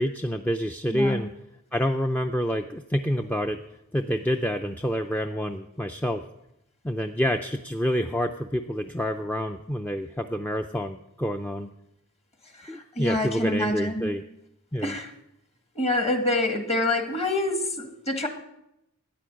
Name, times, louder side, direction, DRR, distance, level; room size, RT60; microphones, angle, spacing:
voice 1, 0.0-1.3 1.7-3.6 3.9-6.2 6.8-11.7 12.7-14.2 14.7-15.0, equal, 5° left, 6 dB, 0.4 m, -27 dB
voice 2, 0.9-1.2 12.5-14.1 14.8-15.1 15.7-18.3, left 1 dB, 30° left, 6 dB, 1.6 m, -27 dB
13.0 x 9.2 x 6.3 m, 0.84 s
head